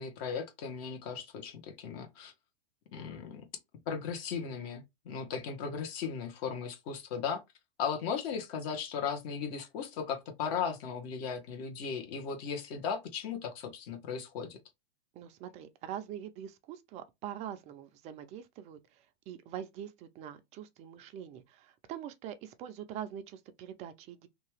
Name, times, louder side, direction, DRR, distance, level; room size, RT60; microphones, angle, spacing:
voice 1, 0.0-2.3 2.9-3.4 3.9-7.4 7.8-14.6, left 6 dB, 45° left, 1.0 m, -37 dB
voice 2, 15.1-24.3, right 10 dB, 20° right, 0.4 m, -44 dB
2.8 x 2.3 x 3.2 m
hypercardioid pair, 130°, 32 cm